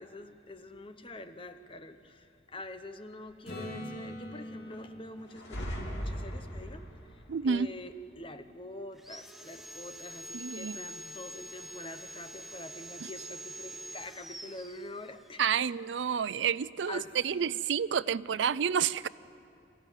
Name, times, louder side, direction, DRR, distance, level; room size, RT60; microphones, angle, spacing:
voice 1, 0.0-15.7 16.1-16.4 16.9-17.5, left 1 dB, 30° left, 8 dB, 0.9 m, -46 dB
Acoustic guitar / Strum, 3.5-7.2 12.1-12.2, equal, 55° left, 4.9 m, -45 dB
sound 1, 5.3-6.9, equal, 85° left, 3.2 m, -37 dB
voice 2, 7.3-7.7 10.3-10.8 15.4-19.1, right 7 dB, 85° right, 18 dB, 0.4 m, -29 dB
Sawing, 9.0-15.4, right 1 dB, ahead, 0.6 m, -45 dB
27.0 x 15.0 x 9.2 m, 2.5 s
head